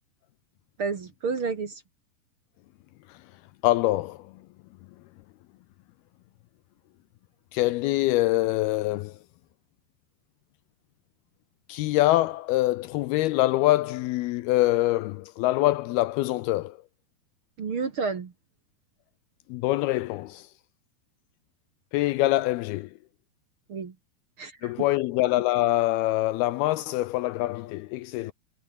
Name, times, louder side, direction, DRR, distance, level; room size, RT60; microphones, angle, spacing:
voice 1, 0.8-1.8 17.6-18.3 23.7-23.9 24.4-24.7, right 5 dB, 45° right, 2.1 m, -30 dB
voice 2, 3.6-4.3 7.5-9.2 11.7-16.8 19.5-20.5 21.9-22.9 24.6-28.3, left 17 dB, 80° left, 2.4 m, -24 dB
omnidirectional pair, 4.8 m